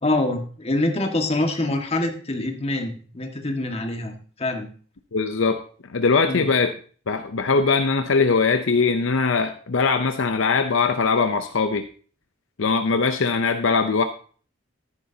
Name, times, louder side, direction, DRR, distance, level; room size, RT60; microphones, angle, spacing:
voice 1, 0.0-4.7 6.2-6.5, left 2 dB, 30° left, 3 dB, 1.7 m, -25 dB
voice 2, 5.1-5.6 5.9-6.7 7.1-11.9 12.6-14.0, left 4 dB, 70° left, 8 dB, 0.7 m, -21 dB
13.5 x 10.5 x 2.8 m, 0.42 s
head